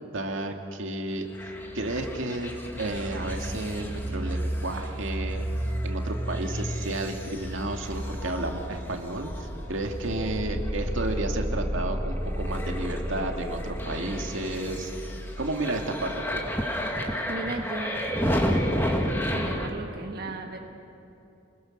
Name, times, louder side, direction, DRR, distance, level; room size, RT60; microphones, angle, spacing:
voice 1, 0.1-1.3 1.7-2.5 2.8-5.5 5.8-14.9 15.4-16.4 18.3-18.4, right 2 dB, 75° right, 3 dB, 2.1 m, -32 dB
sound 1, 1.3-19.7, equal, 10° left, 2.0 m, -31 dB
voice 2, 17.3-18.8 19.1-20.6, right 2 dB, 50° right, 1 dB, 1.5 m, -36 dB
29.0 x 21.5 x 6.5 m, 2.8 s
head